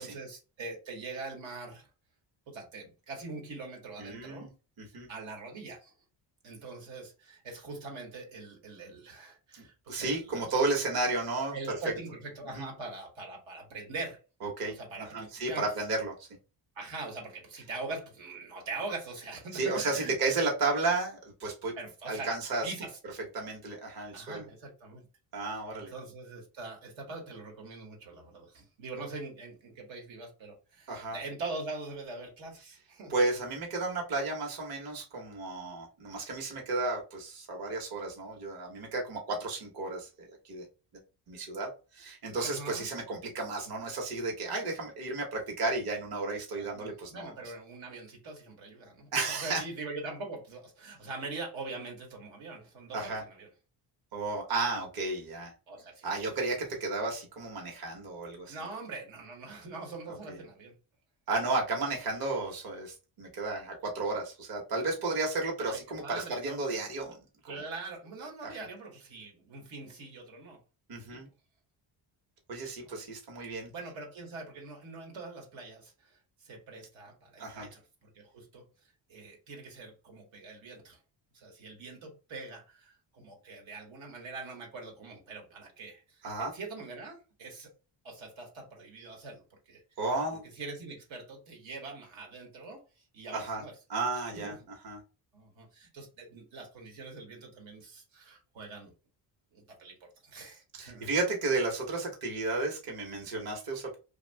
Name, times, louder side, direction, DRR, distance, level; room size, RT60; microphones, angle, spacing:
voice 1, 0.0-1.9 2.5-4.5 5.1-5.9 6.4-10.4 11.5-14.2 14.7-15.7 16.7-20.1 21.8-22.3 22.6-23.0 24.1-25.1 25.5-33.2 42.4-42.9 46.6-53.5 55.7-56.4 58.5-60.7 65.6-66.9 67.5-70.6 71.1-71.2 72.8-73.0 73.7-81.0 81.3-87.7 88.0-89.8 90.5-93.8 94.3-94.6 95.3-98.9 99.5-101.1, right 3 dB, 75° right, 1.2 m, -43 dB
voice 2, 4.0-4.5 4.8-5.1 9.5-11.8 12.5-12.7 14.4-14.8 15.1-16.3 19.5-21.7 22.1-22.7 23.3-24.4 25.3-25.9 30.9-31.2 33.1-40.6 41.3-47.3 49.1-49.6 52.9-53.2 54.1-55.5 56.0-58.6 60.3-60.4 61.3-67.2 67.4-67.5 68.4-68.5 70.9-71.3 72.5-73.7 77.4-77.7 86.2-86.5 90.0-90.4 93.3-93.6 93.9-94.5 94.8-95.0 100.8-104.0, right 3 dB, 50° right, 1.0 m, -33 dB
2.6 x 2.3 x 3.2 m
cardioid pair, 110°, 46 cm